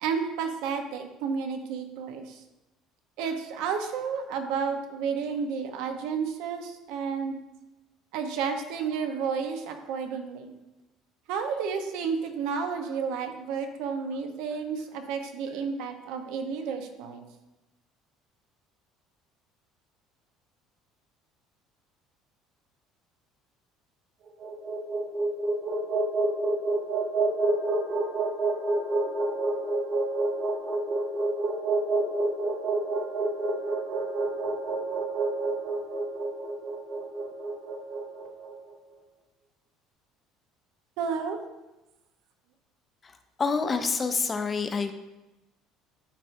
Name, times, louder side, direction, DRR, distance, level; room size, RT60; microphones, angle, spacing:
voice 1, 0.0-2.4 3.2-7.4 8.1-10.5 11.3-17.2 41.0-41.4, right 6 dB, 75° right, 6 dB, 0.9 m, -31 dB
sound 1, 24.3-38.5, right 2 dB, 45° right, 1.5 m, -28 dB
voice 2, 43.0-44.9, left 4 dB, 20° left, 8 dB, 0.5 m, -28 dB
11.5 x 4.5 x 2.6 m, 1.0 s
cardioid pair, 160°, 0 cm